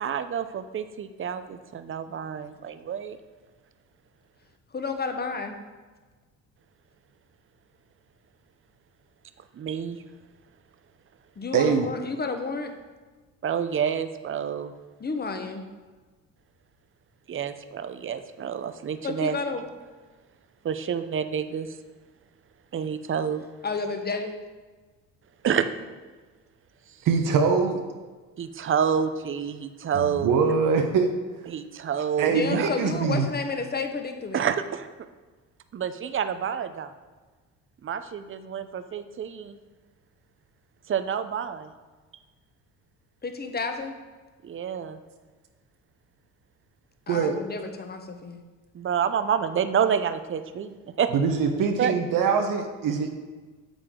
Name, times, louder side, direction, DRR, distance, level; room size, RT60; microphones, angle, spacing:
voice 1, 0.0-3.2 9.5-10.0 13.4-14.7 17.3-19.4 20.6-21.7 22.7-23.5 25.4-25.7 28.4-30.3 31.5-32.7 34.3-34.9 35.7-36.9 37.8-39.6 40.9-41.7 44.4-45.0 48.7-51.1 51.8-51.9, right 7 dB, 35° right, 10 dB, 0.7 m, -28 dB
voice 2, 4.7-5.6 11.4-12.8 15.0-15.6 19.0-19.6 23.6-24.4 32.3-34.5 43.2-43.9 47.1-48.4, left 4 dB, 25° left, 6 dB, 1.2 m, -31 dB
voice 3, 11.5-11.9 27.0-27.8 29.9-31.1 32.2-33.3 47.1-47.4 51.1-53.1, right 5 dB, 60° right, 5 dB, 1.1 m, -23 dB
8.9 x 6.8 x 3.8 m, 1.3 s
supercardioid pair, 80°, 37 cm